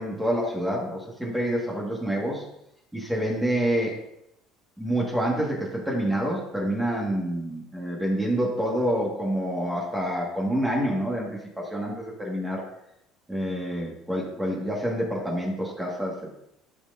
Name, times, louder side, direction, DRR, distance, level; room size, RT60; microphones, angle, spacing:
voice 1, 0.0-2.4 2.9-3.9 4.8-12.6 13.3-16.3, equal, 5° right, -3 dB, 1.8 m, -27 dB
13.0 x 6.4 x 2.7 m, 0.80 s
cardioid pair, 140°, 0 cm